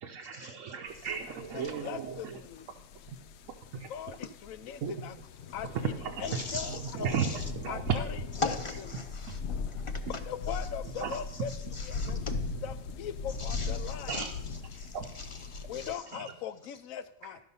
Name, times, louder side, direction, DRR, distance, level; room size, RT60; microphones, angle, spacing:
voice 1, 0.0-2.4 3.1-3.2 3.7-3.9 4.8-5.2 5.6-8.1 9.3-9.4 10.1-10.2 11.0-11.2 12.1-12.6 14.1-14.3 14.9-15.1 16.1-16.3, right 6 dB, 80° right, 2 dB, 1.2 m, -35 dB
sound 1, 0.9-15.9, left 5 dB, 65° left, 0.7 m, -40 dB
voice 2, 1.5-2.7 3.9-5.1 5.5-5.9 6.2-7.2 7.7-8.6 10.1-11.5 11.8-12.2 12.6-14.2 15.7-17.4, left 8 dB, 85° left, 12 dB, 1.1 m, -40 dB
voice 3, 6.3-6.8 7.2-7.4 8.4-9.4 9.7-10.0 11.7-12.3 13.4-14.3 14.7-16.0, left 3 dB, 45° left, 8 dB, 0.4 m, -39 dB
12.0 x 5.5 x 5.5 m, 0.84 s
omnidirectional pair, 1.4 m